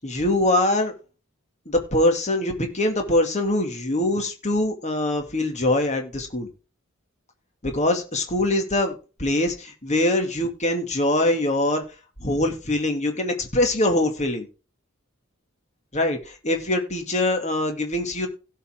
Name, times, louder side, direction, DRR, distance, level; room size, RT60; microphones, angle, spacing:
voice 1, 0.0-0.9 1.7-6.5 7.6-11.8 12.2-14.5 15.9-18.3, left 1 dB, 35° left, 4 dB, 2.5 m, -23 dB
17.0 x 5.8 x 3.8 m, 0.32 s
head